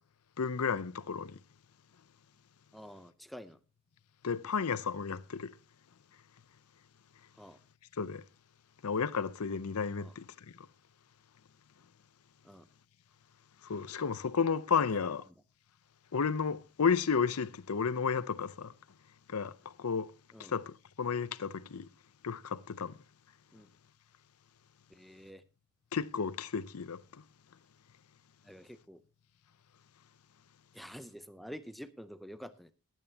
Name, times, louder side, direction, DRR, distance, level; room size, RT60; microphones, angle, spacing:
voice 1, 0.4-1.4 4.2-5.5 8.0-8.2 8.8-10.3 13.6-15.2 16.1-18.7 19.3-19.5 19.8-20.1 20.5-21.9 22.2-23.0 25.9-27.0, left 6 dB, 85° left, 0.6 m, -32 dB
voice 2, 2.7-3.6 7.4-7.6 10.0-10.2 12.4-12.7 14.8-15.1 20.3-20.5 23.5-23.7 24.9-25.4 28.4-29.0 30.7-32.7, equal, ahead, 0.6 m, -48 dB
19.0 x 9.1 x 2.8 m
head